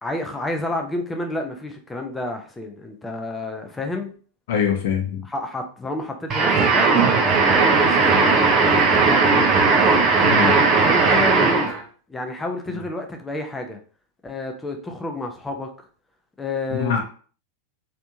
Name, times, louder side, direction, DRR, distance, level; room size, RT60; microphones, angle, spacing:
voice 1, 0.0-4.1 5.2-6.9 7.2-9.5 10.8-11.6 12.1-13.8 14.2-15.7 16.4-17.0, left 2 dB, 10° left, 4 dB, 0.7 m, -30 dB
voice 2, 4.5-5.2 10.2-10.6 12.7-12.8 16.7-17.0, left 8 dB, 55° left, 3 dB, 0.8 m, -23 dB
sound 1, 6.3-11.8, right 4 dB, 30° right, 0.7 m, -17 dB
3.3 x 2.9 x 2.7 m, 0.42 s
figure-of-eight pair, 90°, 0 cm